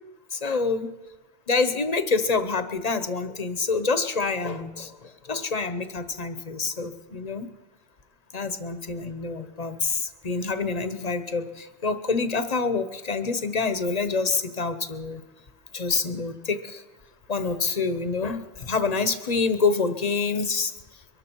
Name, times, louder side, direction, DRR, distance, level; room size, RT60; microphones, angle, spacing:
voice 1, 0.3-0.9 1.5-7.5 8.3-15.2 15.7-16.8 17.3-20.7, left 4 dB, 40° left, 10 dB, 0.9 m, -27 dB
23.0 x 12.0 x 4.5 m, 1.1 s
omnidirectional pair, 1.1 m